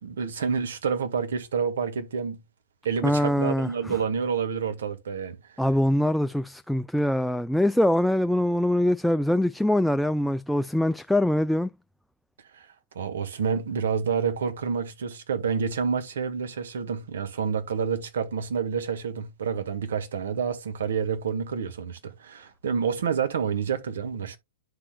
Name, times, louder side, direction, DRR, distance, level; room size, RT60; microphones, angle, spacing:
voice 1, 0.0-2.4 2.8-5.4 12.5-12.7 12.9-24.4, right 6 dB, 65° right, 1.4 m, -28 dB
voice 2, 3.0-4.0 5.6-11.7, left 1 dB, ahead, 0.3 m, -23 dB
12.0 x 4.4 x 2.2 m
figure-of-eight pair, 105°, 0 cm